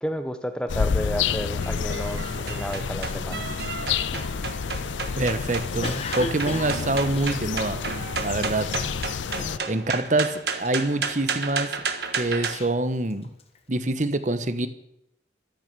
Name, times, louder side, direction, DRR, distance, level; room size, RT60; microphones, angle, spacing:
voice 1, 0.0-3.5, equal, 5° left, 8 dB, 1.0 m, -31 dB
sound 1, 0.7-9.6, left 6 dB, 80° left, 0.5 m, -29 dB
sound 2, 0.8-12.6, right 5 dB, 60° right, 1.5 m, -33 dB
Cough, 4.1-8.2 8.7-9.0 9.4-10.1 10.4-11.5 12.1-13.6, left 2 dB, 30° left, 1.5 m, -37 dB
voice 2, 5.1-7.8 8.2-9.0 9.7-11.8 12.1-13.3 13.7-14.7, right 2 dB, 40° right, 11 dB, 1.1 m, -26 dB
14.5 x 12.5 x 6.8 m, 0.82 s
head